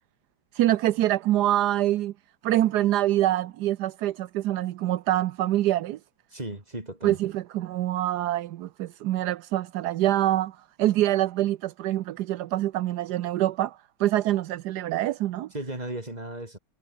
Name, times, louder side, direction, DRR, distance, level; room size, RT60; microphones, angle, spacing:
voice 1, 0.5-2.1 2.4-6.0 7.0-15.5, right 14 dB, 75° right, 1.0 m, -25 dB
voice 2, 6.3-7.2 15.5-16.6, right 1 dB, 15° right, 4.7 m, -35 dB
omnidirectional pair, 2.4 m